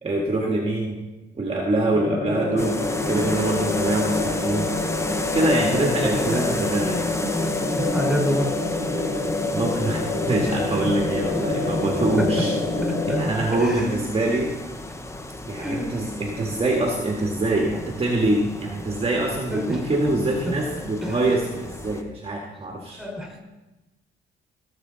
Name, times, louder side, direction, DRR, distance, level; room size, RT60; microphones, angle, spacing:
voice 1, 0.0-1.0 1.3-4.7 5.3-7.0 9.5-12.5 13.1-14.5 15.5-23.0, right 2 dB, 30° right, 0 dB, 1.7 m, -24 dB
sound 1, 1.9-13.2, left 2 dB, 65° left, 4.4 m, -26 dB
sound 2, 2.6-22.0, left 2 dB, 15° left, 1.1 m, -34 dB
voice 2, 5.7-6.6 7.8-8.5 12.2-12.5 13.1-13.2 13.5-14.0 15.6-15.9 19.5-19.8 20.4-20.6 21.0-21.4 23.0-23.4, equal, ahead, 0 dB, 4.3 m, -28 dB
16.5 x 6.9 x 4.0 m, 1.1 s
cardioid pair, 90°, 20 cm